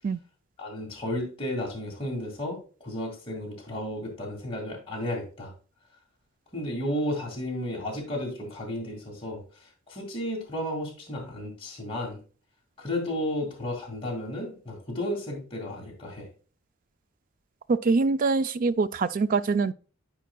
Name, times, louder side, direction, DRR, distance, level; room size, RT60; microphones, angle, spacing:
voice 1, 0.6-5.5 6.5-12.2 12.8-16.3, left 1 dB, 25° left, 2.1 m, -33 dB
voice 2, 17.7-19.7, right 4 dB, 40° right, 0.3 m, -24 dB
12.0 x 5.0 x 2.2 m
head